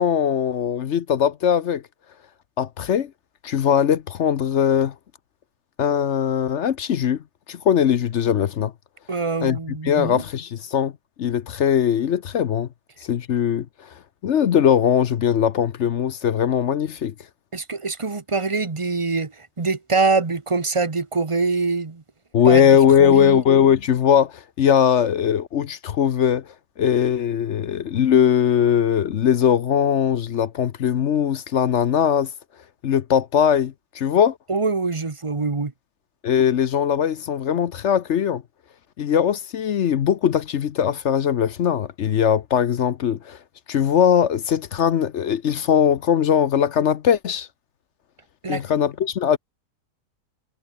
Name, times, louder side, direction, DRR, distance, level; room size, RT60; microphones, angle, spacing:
voice 1, 0.0-1.8 2.6-3.1 3.4-4.9 5.8-7.2 7.5-8.7 9.4-10.9 11.2-12.7 13.0-13.7 14.2-17.1 22.3-26.5 26.8-32.3 32.8-34.4 36.2-38.4 39.0-43.4 43.7-47.5 48.5-49.4, left 8 dB, 55° left, 0.9 m, -20 dB
voice 2, 9.1-10.2 17.5-22.0 22.4-22.7 23.0-23.4 34.5-35.7 48.4-48.6, right 4 dB, 20° right, 1.0 m, -24 dB
omnidirectional pair, 1.7 m